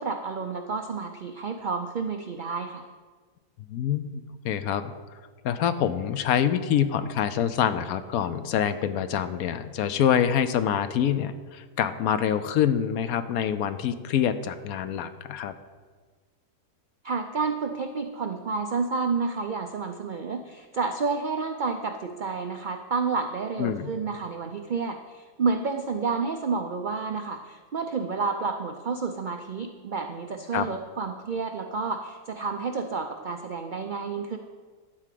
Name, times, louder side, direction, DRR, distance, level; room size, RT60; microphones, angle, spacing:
voice 1, 0.0-2.9 17.0-34.4, right 4 dB, 70° right, 5 dB, 0.4 m, -30 dB
voice 2, 3.7-4.9 5.4-15.5 23.6-23.9 30.5-30.7, left 9 dB, 75° left, 12 dB, 1.1 m, -26 dB
11.5 x 4.9 x 7.5 m, 1.5 s
omnidirectional pair, 1.6 m